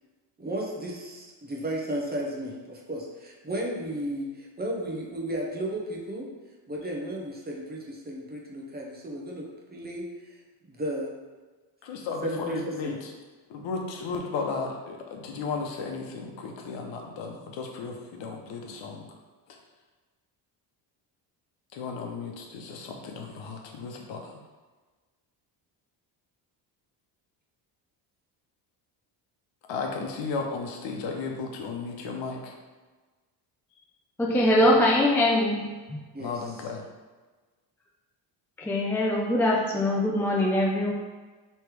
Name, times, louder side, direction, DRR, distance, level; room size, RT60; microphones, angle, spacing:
voice 1, 0.4-6.3 6.7-10.4 10.6-11.2 12.2-13.0 36.1-36.4, right 1 dB, 20° right, -1 dB, 0.8 m, -34 dB
voice 2, 11.8-13.1 13.5-19.1 19.5-19.6 21.7-24.3 29.7-32.5 36.2-36.9, left 4 dB, 70° left, 1 dB, 0.9 m, -34 dB
voice 3, 34.2-36.0 38.6-40.9, left 1 dB, 5° left, -2 dB, 0.3 m, -23 dB
3.2 x 3.2 x 4.7 m, 1.3 s
cardioid pair, 100°, 46 cm